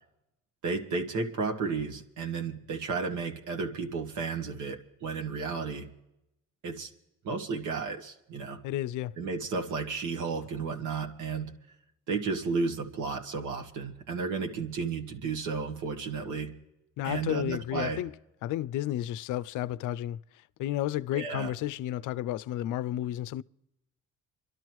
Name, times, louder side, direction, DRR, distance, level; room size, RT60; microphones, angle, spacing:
voice 1, 0.6-5.9 6.6-6.9 7.2-8.6 9.2-11.5 12.1-16.5 17.0-18.0 21.1-21.5, right 4 dB, 75° right, 1.7 m, -33 dB
voice 2, 8.6-9.2 17.0-18.1 18.4-20.2 20.6-23.4, left 13 dB, 80° left, 0.5 m, -32 dB
27.5 x 12.5 x 3.1 m
cardioid pair, 90°, 30 cm